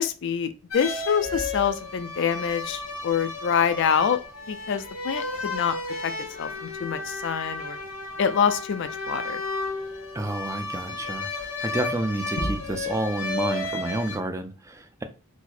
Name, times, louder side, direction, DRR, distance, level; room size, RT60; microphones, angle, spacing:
voice 1, 0.0-4.2 4.5-5.8 6.0-6.1 6.4-7.8 8.2-9.4, left 7 dB, 60° left, 11 dB, 0.4 m, -26 dB
sound 1, 0.7-14.2, left 2 dB, 85° left, 1.4 m, -33 dB
voice 2, 10.1-15.0, right 2 dB, 15° right, 6 dB, 0.4 m, -30 dB
4.6 x 2.1 x 4.2 m, 0.33 s
head